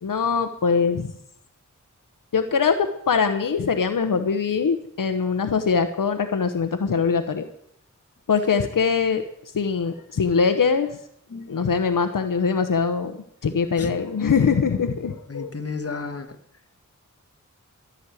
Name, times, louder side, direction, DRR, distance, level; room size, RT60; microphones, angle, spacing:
voice 1, 0.0-1.1 2.3-7.4 8.3-9.2 9.5-10.9 11.5-13.1 13.4-15.5, left 5 dB, 85° left, 7 dB, 1.0 m, -22 dB
voice 2, 15.3-16.3, left 4 dB, 45° left, 7 dB, 1.5 m, -32 dB
13.5 x 6.5 x 9.8 m, 0.70 s
wide cardioid pair, 55°, 32 cm